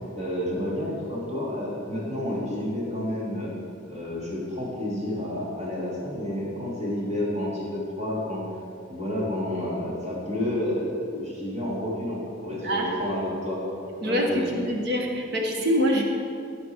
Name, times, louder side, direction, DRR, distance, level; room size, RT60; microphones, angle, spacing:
voice 1, 0.2-3.5 3.9-8.4 8.9-13.6 14.0-14.7, left 1 dB, 35° right, -7 dB, 3.5 m, -30 dB
voice 2, 14.0-16.0, equal, 55° right, 0 dB, 1.6 m, -25 dB
16.0 x 8.2 x 4.8 m, 2.4 s
head